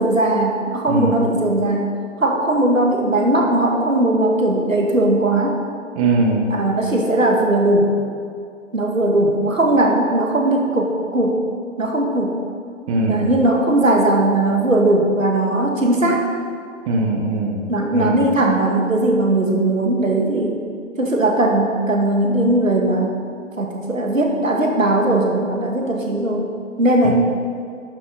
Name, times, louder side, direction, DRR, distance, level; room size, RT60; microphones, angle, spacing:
voice 1, 0.0-1.9 2.2-5.6 6.5-7.9 8.7-11.4 11.8-12.4 13.1-16.2 17.7-20.6 21.0-23.1 23.6-26.5 26.8-27.1, right 1 dB, 90° right, 0 dB, 1.9 m, -18 dB
voice 2, 0.9-1.2 6.0-6.5 12.9-13.3 16.9-17.7 17.9-18.2 27.0-27.1, right 2 dB, 25° right, -1 dB, 1.3 m, -20 dB
12.0 x 7.6 x 4.0 m, 2.3 s
figure-of-eight pair, 135°, 38 cm